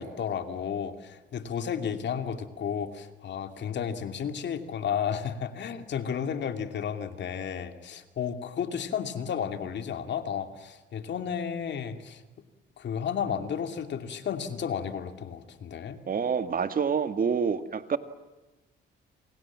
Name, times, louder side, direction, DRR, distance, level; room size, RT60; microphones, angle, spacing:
voice 1, 0.0-12.2 12.8-16.0, left 7 dB, 65° left, 8 dB, 2.6 m, -33 dB
voice 2, 16.1-18.0, right 6 dB, 45° right, 10 dB, 1.9 m, -27 dB
27.5 x 27.5 x 7.5 m, 1.1 s
cardioid pair, 90°, 20 cm